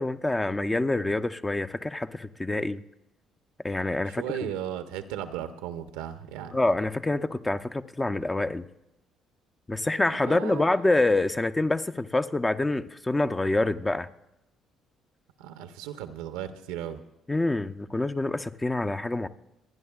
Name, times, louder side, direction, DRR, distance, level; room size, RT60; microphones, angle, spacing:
voice 1, 0.0-2.8 3.6-4.5 6.5-8.7 9.7-14.1 17.3-19.3, left 2 dB, 20° left, 0.7 m, -26 dB
voice 2, 4.0-6.6 10.1-10.7 15.4-17.0, right 10 dB, 80° right, 0.8 m, -36 dB
26.5 x 10.0 x 2.4 m
hypercardioid pair, 55°, 0 cm